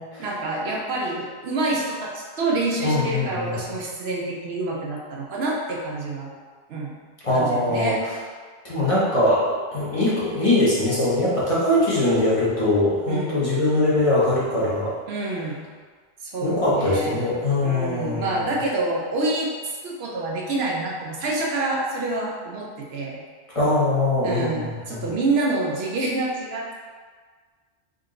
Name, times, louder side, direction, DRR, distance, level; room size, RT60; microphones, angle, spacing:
voice 1, 0.2-6.3 6.7-7.0 7.3-8.0 13.1-13.4 15.1-15.7 16.2-17.2 17.6-19.5 19.8-23.2 24.2-26.8, right 2 dB, 70° right, -2 dB, 0.9 m, -27 dB
voice 2, 2.8-3.5 7.2-7.9 8.6-9.4 9.7-14.9 16.4-18.3 23.5-25.0, left 1 dB, 30° left, -9 dB, 1.0 m, -22 dB
3.8 x 2.7 x 3.7 m, 1.5 s
omnidirectional pair, 1.1 m